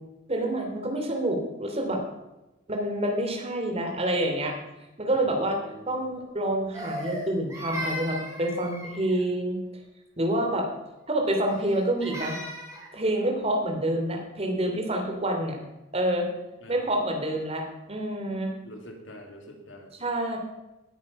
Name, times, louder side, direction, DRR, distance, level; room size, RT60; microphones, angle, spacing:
voice 1, 0.3-2.0 2.7-4.5 5.0-5.6 5.9-9.6 10.2-10.7 11.1-12.4 12.9-15.6 15.9-16.3 16.7-18.5 20.0-20.4, right 1 dB, 30° right, 2 dB, 3.1 m, -27 dB
voice 2, 5.1-6.0 16.6-16.7 18.6-19.9, equal, 70° left, 2 dB, 3.2 m, -45 dB
Crying sobbing, 6.7-9.3 11.5-12.9, equal, 15° right, 3.9 m, -37 dB
18.5 x 9.4 x 5.5 m, 1.0 s
head